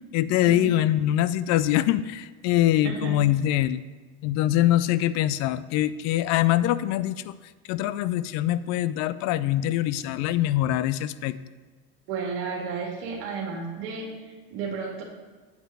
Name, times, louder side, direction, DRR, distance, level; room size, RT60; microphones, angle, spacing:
voice 1, 0.1-3.8 4.2-7.3 7.7-11.4, left 13 dB, 55° left, 16 dB, 0.5 m, -23 dB
voice 2, 2.8-3.2 12.1-15.0, right 5 dB, 70° right, 0 dB, 2.1 m, -33 dB
8.3 x 4.6 x 6.7 m, 1.4 s
supercardioid pair, 105°, 33 cm